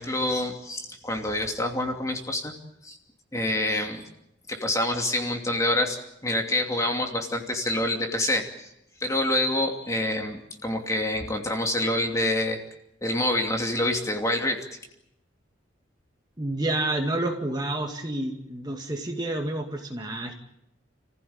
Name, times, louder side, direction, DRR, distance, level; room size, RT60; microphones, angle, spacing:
voice 1, 0.0-2.5 2.8-3.0 3.3-4.1 4.5-6.0 6.2-8.7 9.0-12.6 13.0-14.6, left 1 dB, 15° left, 2 dB, 2.7 m, -27 dB
voice 2, 16.4-20.3, right 2 dB, 20° right, 2 dB, 2.2 m, -29 dB
29.5 x 15.5 x 8.8 m, 0.85 s
head